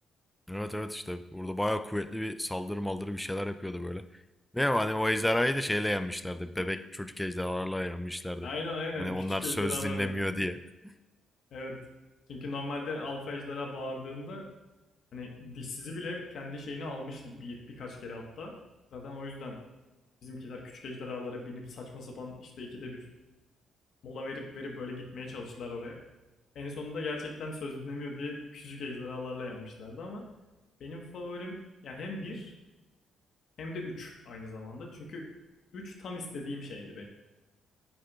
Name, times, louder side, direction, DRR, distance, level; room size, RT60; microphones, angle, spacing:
voice 1, 0.5-4.2 4.5-8.5 9.0-10.9, left 1 dB, 5° left, 11 dB, 0.4 m, -31 dB
voice 2, 8.4-10.2 11.5-11.8 12.3-14.5 15.1-18.5 18.9-19.6 20.2-23.1 24.0-26.0 26.5-30.2 30.8-31.6 31.8-32.5 33.6-35.2 35.7-37.0, left 2 dB, 65° left, 1 dB, 1.2 m, -39 dB
8.4 x 5.7 x 2.4 m, 1.1 s
cardioid pair, 90°, 0 cm